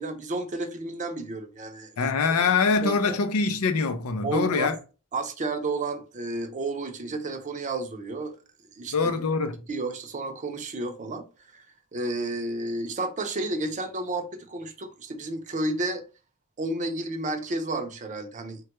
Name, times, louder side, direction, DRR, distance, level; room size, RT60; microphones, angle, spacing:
voice 1, 0.0-2.5 2.8-3.2 4.2-4.7 5.1-8.3 8.7-9.1 9.7-11.2 11.5-11.6 11.9-16.0 16.6-18.6, right 2 dB, 35° right, 0.5 m, -31 dB
voice 2, 2.0-4.8 8.9-9.5, left 4 dB, 90° left, 0.5 m, -24 dB
3.2 x 2.3 x 2.9 m
head